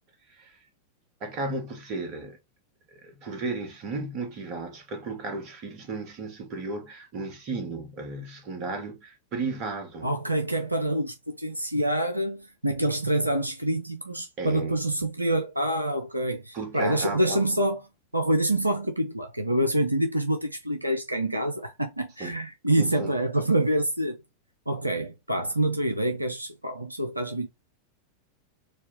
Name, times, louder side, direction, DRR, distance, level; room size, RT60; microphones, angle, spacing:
voice 1, 1.2-2.4 2.9-10.2 14.4-14.7 16.5-17.4 22.2-22.3 22.8-23.1, right 3 dB, 40° right, 1.3 m, -34 dB
voice 2, 10.0-17.8 18.1-24.2 24.7-27.5, right 1 dB, 85° right, 0.5 m, -26 dB
4.1 x 2.3 x 3.6 m
figure-of-eight pair, 90°, 0 cm